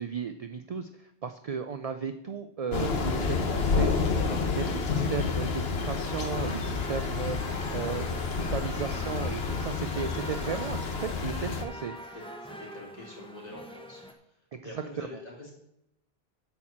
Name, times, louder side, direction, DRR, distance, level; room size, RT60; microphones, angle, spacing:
voice 1, 0.0-12.1 14.5-15.1, right 6 dB, 50° right, 8 dB, 0.5 m, -35 dB
Thunder / Rain, 2.7-11.6, left 4 dB, 70° left, 1.3 m, -29 dB
sound 1, 6.0-14.1, equal, 5° left, 0.8 m, -44 dB
voice 2, 9.9-10.3 12.1-12.2 12.6-14.0 14.6-15.5, left 2 dB, 40° left, -4 dB, 3.4 m, -45 dB
10.5 x 4.5 x 7.3 m, 0.80 s
omnidirectional pair, 1.1 m